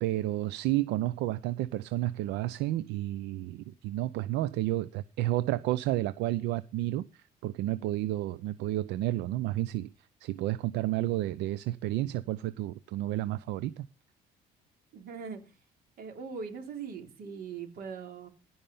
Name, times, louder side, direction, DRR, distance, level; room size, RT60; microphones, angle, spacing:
voice 1, 0.0-9.9 10.2-13.9, right 15 dB, 85° right, 0.6 m, -31 dB
voice 2, 14.9-15.4 16.0-18.3, right 6 dB, 65° right, 3.5 m, -40 dB
15.5 x 5.6 x 5.5 m
cardioid pair, 110°, 17 cm